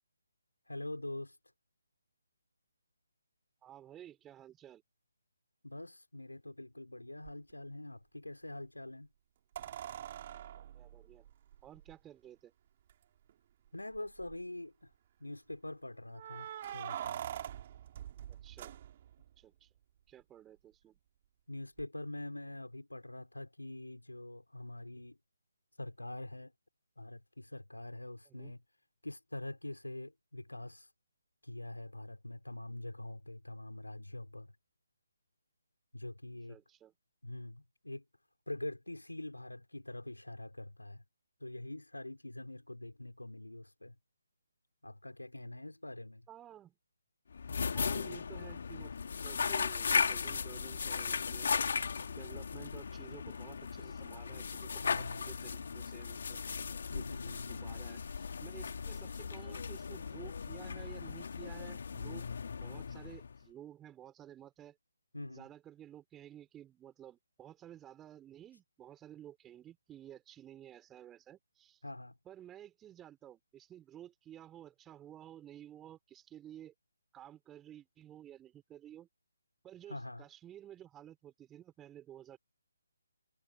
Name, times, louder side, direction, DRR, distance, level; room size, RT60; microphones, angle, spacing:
voice 1, 0.7-1.3 5.6-9.1 13.7-14.9 15.2-17.2 21.5-25.2 25.8-26.5 27.0-28.6 29.0-30.9 31.4-34.5 35.9-36.6 37.2-38.0 38.5-41.0 41.4-43.9 44.8-46.3 54.8-55.4 56.9-57.8 65.1-65.5 71.8-72.2 79.9-80.2, left 1 dB, 80° left, 5.3 m, -44 dB
voice 2, 3.6-4.8 10.6-11.3 11.6-12.5 18.3-18.7 19.4-19.7 20.1-21.0 28.2-28.5 36.5-36.9 46.3-46.8 47.7-48.9 49.2-51.6 52.1-56.4 56.9-64.8 65.3-71.8 72.2-76.7 77.1-79.1 79.6-82.4, right 11 dB, 10° right, 5.0 m, -53 dB
sound 1, 7.2-7.3 9.5-11.9 12.9-13.0 13.3-13.4 13.9-14.4 16.1-19.3 21.8-21.9, right 11 dB, 30° right, 4.4 m, -44 dB
sound 2, 47.3-63.5, left 5 dB, 50° left, 2.9 m, -37 dB
figure-of-eight pair, 145°, 0 cm